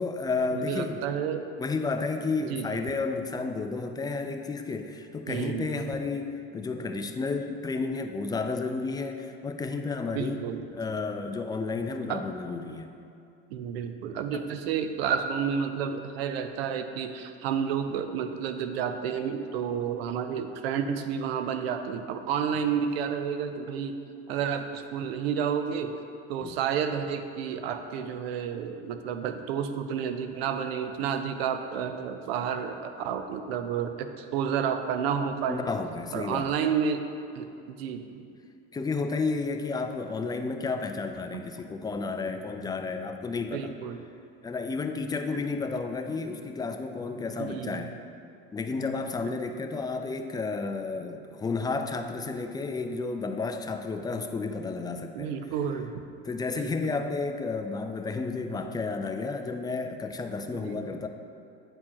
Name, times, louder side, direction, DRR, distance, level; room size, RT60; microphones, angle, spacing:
voice 1, 0.0-1.0 1.6-10.4 10.7-12.9 14.3-14.4 26.4-26.6 35.4-36.5 38.7-43.7 44.4-48.0 48.5-55.3 56.2-61.1, left 4 dB, 15° left, 6 dB, 0.3 m, -32 dB
voice 2, 0.5-1.5 2.5-2.8 5.3-5.9 10.1-10.6 12.1-12.2 13.5-24.0 24.3-25.9 26.3-35.7 36.1-37.0 37.3-38.3 41.3-41.4 43.5-44.0 45.3-45.4 47.4-47.9 49.2-49.4 55.1-55.9 56.5-56.9 60.5-60.9, right 7 dB, 90° right, 8 dB, 0.5 m, -31 dB
8.7 x 4.4 x 2.9 m, 2.5 s
supercardioid pair, 95°, 30 cm